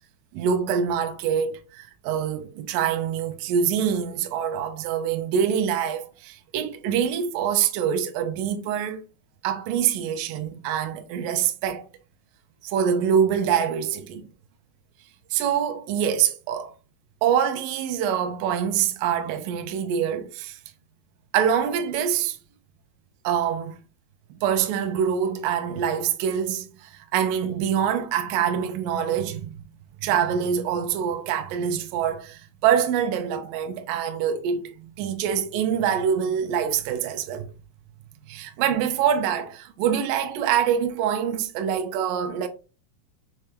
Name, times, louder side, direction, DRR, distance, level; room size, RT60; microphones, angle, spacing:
voice 1, 0.3-9.0 9.4-11.9 12.6-14.2 15.3-16.7 17.2-20.6 21.3-22.4 23.2-23.8 24.4-29.6 30.0-37.5 38.3-42.5, right 8 dB, 80° right, 2.0 m, -25 dB
6.5 x 2.2 x 3.3 m
omnidirectional pair, 4.5 m